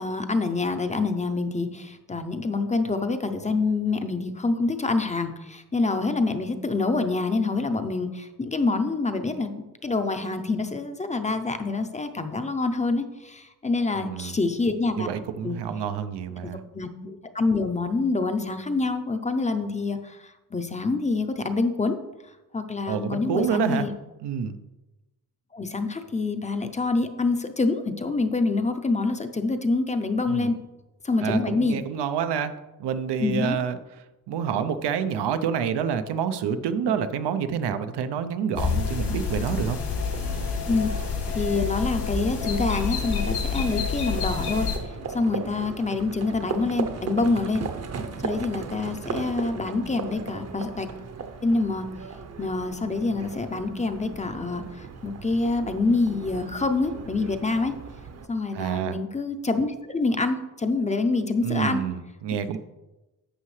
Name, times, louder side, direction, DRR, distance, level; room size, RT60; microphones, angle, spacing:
voice 1, 0.0-9.5 9.8-15.1 15.4-15.6 16.4-16.5 16.7-22.0 22.5-23.9 25.5-30.5 31.0-31.8 33.2-33.6 40.7-40.9 41.3-44.7 45.1-47.7 48.2-50.9 51.4-51.9 52.4-57.7 58.3-61.8, left 3 dB, 20° left, 7 dB, 0.6 m, -26 dB
voice 2, 13.9-14.4 15.0-16.6 22.9-23.9 24.2-24.6 30.2-30.5 31.2-33.8 34.3-39.8 58.5-59.0 61.4-62.6, right 7 dB, 85° right, 10 dB, 0.8 m, -28 dB
sound 1, 38.6-44.8, left 5 dB, 80° left, 2.3 m, -28 dB
Livestock farm animals working animals, 39.3-58.3, right 5 dB, 40° right, 0.8 m, -37 dB
11.5 x 7.5 x 3.2 m, 1.0 s
cardioid pair, 135°, 40 cm